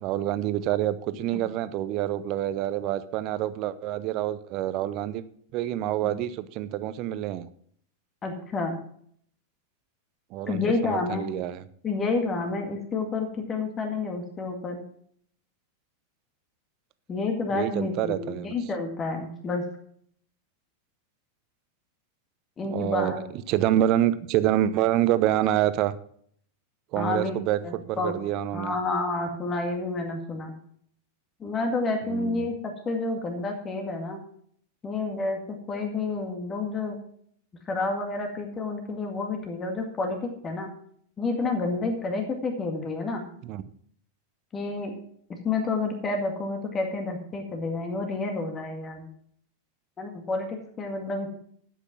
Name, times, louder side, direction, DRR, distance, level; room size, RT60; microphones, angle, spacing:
voice 1, 0.0-5.2 5.5-7.5 10.3-11.6 17.5-18.5 22.7-23.2 23.5-25.9 26.9-28.7 32.1-32.5 43.4-43.6, right 12 dB, 40° right, 15 dB, 0.7 m, -27 dB
voice 2, 8.2-8.8 10.5-11.3 11.8-14.8 17.1-19.7 22.6-23.2 26.9-27.3 27.6-28.1 28.5-30.5 31.4-34.2 34.8-37.0 37.7-40.7 41.2-43.3 44.5-44.9 45.3-49.1 50.0-51.3, left 3 dB, 20° left, 3 dB, 2.0 m, -29 dB
11.5 x 8.2 x 5.9 m, 0.62 s
figure-of-eight pair, 90°, 0 cm